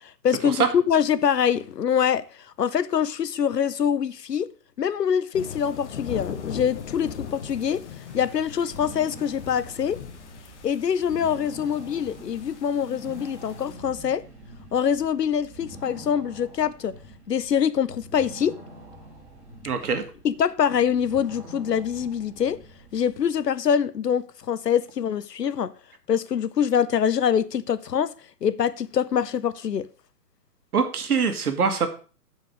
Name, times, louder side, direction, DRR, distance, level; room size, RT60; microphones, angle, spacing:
voice 1, 0.0-2.2 2.6-4.5 4.8-7.8 8.1-10.0 10.6-14.2 14.7-16.9 17.3-18.6 20.2-22.6 22.9-25.7 26.1-28.1 28.4-29.9, left 8 dB, 85° left, 0.8 m, -24 dB
sound 1, 5.3-13.7, left 7 dB, 45° left, 1.2 m, -39 dB
sound 2, 8.1-23.5, right 1 dB, 5° right, 2.7 m, -45 dB
voice 2, 19.6-20.0 30.7-31.9, right 5 dB, 65° right, 1.8 m, -23 dB
9.0 x 5.1 x 6.1 m
figure-of-eight pair, 135°, 47 cm